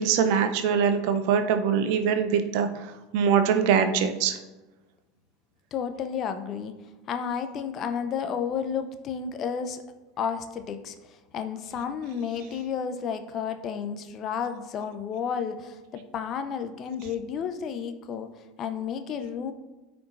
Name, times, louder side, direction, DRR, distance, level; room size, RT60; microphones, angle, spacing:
voice 1, 0.0-2.7 3.1-4.4, right 7 dB, 60° right, 8 dB, 0.7 m, -23 dB
voice 2, 5.7-6.7 7.1-9.8 10.2-18.3 18.6-19.5, left 7 dB, 40° left, 8 dB, 0.7 m, -32 dB
13.0 x 4.5 x 2.6 m, 1.1 s
figure-of-eight pair, 80°, 0 cm